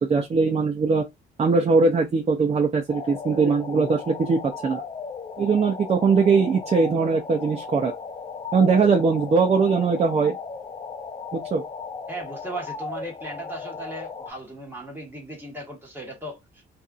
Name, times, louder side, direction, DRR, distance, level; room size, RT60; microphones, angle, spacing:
voice 1, 0.0-1.0 1.4-4.8 5.4-7.9 8.5-10.4 11.3-11.6, right 4 dB, 35° right, 0.6 m, -21 dB
sound 1, 2.9-14.3, left 5 dB, 25° left, 0.4 m, -36 dB
voice 2, 12.1-16.6, right 2 dB, 10° right, 1.5 m, -37 dB
2.7 x 2.5 x 2.4 m
cardioid pair, 90°, 20 cm